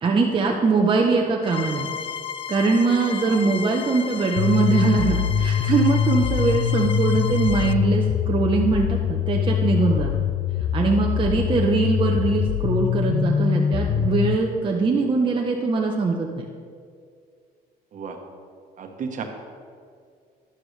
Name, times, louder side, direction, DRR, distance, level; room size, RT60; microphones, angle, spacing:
voice 1, 0.0-1.9 2.5-10.1 10.7-16.4, right 4 dB, 30° right, -1 dB, 0.9 m, -22 dB
sound 1, 1.4-7.7, left 7 dB, 30° left, 0.4 m, -34 dB
sound 2, 4.4-14.4, left 8 dB, 65° left, 0.6 m, -23 dB
voice 2, 18.8-19.2, right 5 dB, 50° right, 4 dB, 1.3 m, -35 dB
11.5 x 11.0 x 3.3 m, 2.2 s
cardioid pair, 110°, 17 cm